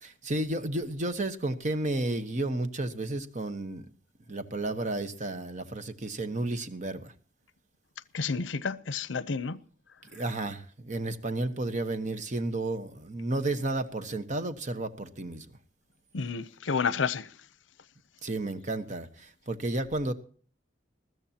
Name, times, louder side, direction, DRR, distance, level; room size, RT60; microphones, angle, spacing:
voice 1, 0.0-3.9 4.3-7.1 10.0-15.5 18.2-20.1, right 2 dB, 40° right, 1.2 m, -32 dB
voice 2, 8.1-9.6 16.1-17.2, left 5 dB, 80° left, 0.7 m, -30 dB
21.0 x 14.0 x 2.9 m
head